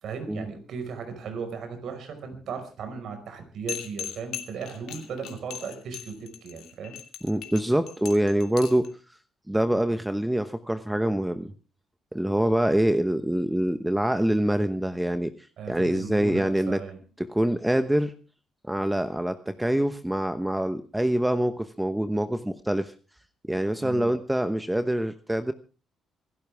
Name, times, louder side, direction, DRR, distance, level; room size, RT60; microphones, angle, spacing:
voice 1, 0.0-7.0 15.6-17.0 23.8-24.1, right 5 dB, 70° right, 6 dB, 5.2 m, -36 dB
sound 1, 3.7-8.9, left 11 dB, 85° left, 2.7 m, -38 dB
voice 2, 7.2-8.9 9.5-11.5 12.1-15.3 15.7-16.8 17.2-18.1 18.7-22.9 23.5-25.5, right 1 dB, 5° right, 10 dB, 1.0 m, -25 dB
26.5 x 12.0 x 3.5 m, 0.36 s
cardioid pair, 90°, 0 cm